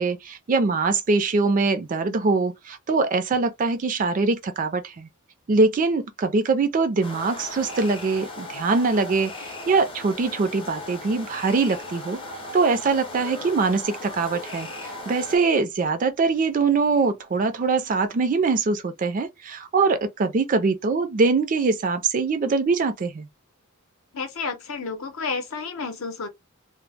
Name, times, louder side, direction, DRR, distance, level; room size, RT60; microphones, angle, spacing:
voice 1, 0.0-5.1 5.5-12.2 12.5-23.3, right 4 dB, 35° right, 0.3 m, -23 dB
sound 1, 7.0-15.4, left 1 dB, 25° left, 0.5 m, -37 dB
voice 2, 24.1-26.3, left 4 dB, 65° left, 0.7 m, -31 dB
2.0 x 2.0 x 3.2 m
head